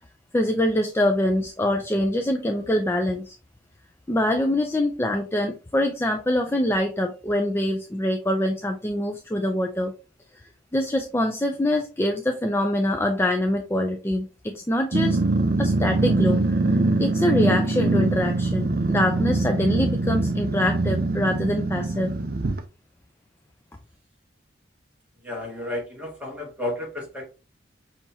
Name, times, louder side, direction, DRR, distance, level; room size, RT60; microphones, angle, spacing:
voice 1, 0.3-3.4 4.1-9.9 10.7-15.2 15.6-16.4 17.0-22.1, left 1 dB, 15° left, 0.4 m, -24 dB
Growling, 14.9-22.6, right 2 dB, 55° right, 0.6 m, -23 dB
voice 2, 25.2-27.3, left 1 dB, 5° right, 1.5 m, -32 dB
6.0 x 2.8 x 2.8 m
head